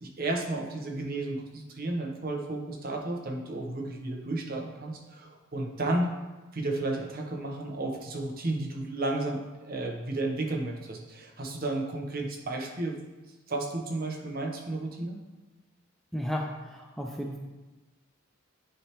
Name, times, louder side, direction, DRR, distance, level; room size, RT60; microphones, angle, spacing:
voice 1, 0.0-6.1 6.5-13.0 13.5-15.2, right 2 dB, 45° right, 1 dB, 0.8 m, -33 dB
voice 2, 16.1-17.4, equal, ahead, 0 dB, 0.3 m, -34 dB
9.8 x 3.3 x 2.9 m, 1.2 s
head